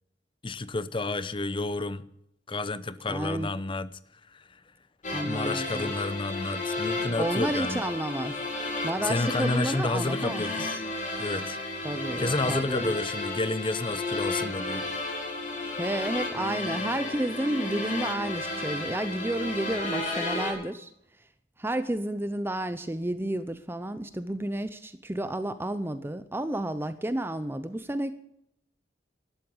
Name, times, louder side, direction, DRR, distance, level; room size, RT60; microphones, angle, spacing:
voice 1, 0.4-2.1 2.5-3.9 4.3-4.6 5.2-7.8 9.0-10.9 11.2-11.6 12.2-14.9, left 2 dB, 30° left, 0.8 m, -30 dB
voice 2, 3.1-3.5 5.1-6.0 7.2-8.3 8.8-10.4 11.8-12.9 15.8-20.9 21.6-28.1, right 1 dB, 15° right, 0.7 m, -31 dB
sound 1, 5.0-20.5, left 2 dB, 45° left, 5.1 m, -33 dB
12.5 x 11.5 x 8.8 m
head